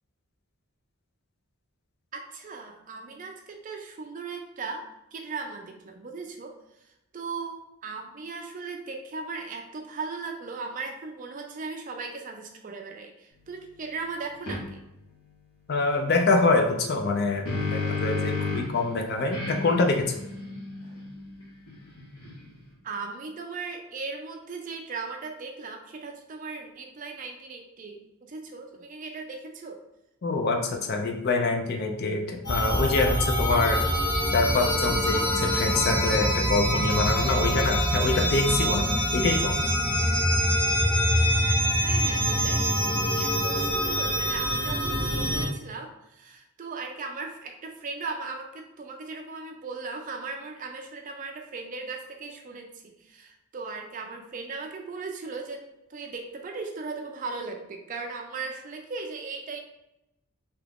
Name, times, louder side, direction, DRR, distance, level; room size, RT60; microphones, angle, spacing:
voice 1, 2.1-4.8 5.1-6.9 7.1-14.8 22.8-29.8 41.8-55.6 55.9-59.6, right 4 dB, 35° right, 3 dB, 0.4 m, -38 dB
sound 1, 14.5-14.6 17.0-18.8 19.3-22.6, left 3 dB, 70° left, 0.9 m, -32 dB
voice 2, 15.7-20.1 30.2-33.8 34.3-39.6, left 3 dB, 45° left, 3 dB, 0.4 m, -25 dB
sound 2, 32.4-45.5, equal, 20° left, 0.7 m, -25 dB
2.9 x 2.4 x 3.4 m, 0.89 s
head